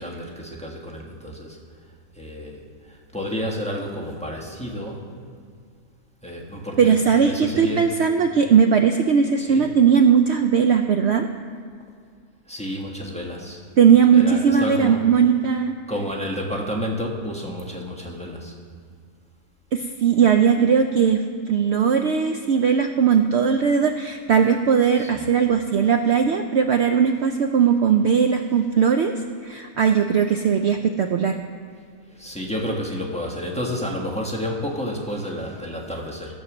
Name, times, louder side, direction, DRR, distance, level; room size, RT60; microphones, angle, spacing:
voice 1, 0.0-1.6 2.1-5.2 6.2-7.9 9.4-9.7 12.5-13.6 14.1-15.1 15.9-18.5 25.0-25.3 32.1-36.4, equal, 5° left, -2 dB, 1.2 m, -30 dB
voice 2, 6.8-11.3 13.8-15.7 19.7-31.4, right 7 dB, 65° right, 6 dB, 0.7 m, -18 dB
13.5 x 7.2 x 6.1 m, 2.2 s
omnidirectional pair, 1.5 m